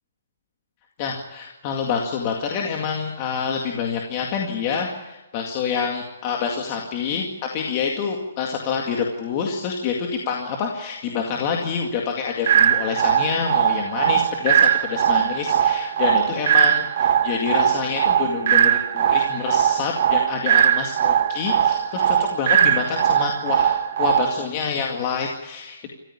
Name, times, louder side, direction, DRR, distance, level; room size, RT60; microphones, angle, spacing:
voice 1, 1.0-7.3 7.5-25.9, left 6 dB, 20° left, 1 dB, 2.1 m, -27 dB
sound 1, 12.5-24.5, right 9 dB, 35° right, 1.4 m, -20 dB
27.5 x 14.5 x 9.9 m, 1.0 s
hypercardioid pair, 180°, 0 cm